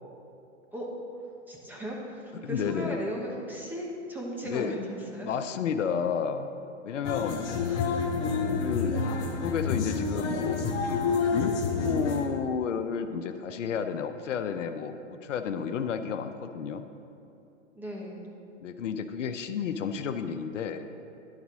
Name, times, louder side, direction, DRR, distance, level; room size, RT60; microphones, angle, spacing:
voice 1, 1.5-5.3 7.7-8.0 8.4-9.0 17.7-18.2, equal, 5° right, -2 dB, 1.0 m, -37 dB
voice 2, 2.4-3.0 4.4-4.8 5.2-6.5 6.8-7.4 8.6-9.0 9.2-10.6 10.8-16.8 18.6-20.9, left 7 dB, 80° left, 9 dB, 0.6 m, -31 dB
sound 1, 7.0-12.3, left 4 dB, 20° left, 0.3 m, -28 dB
11.0 x 4.1 x 6.1 m, 2.7 s
hypercardioid pair, 130°, 37 cm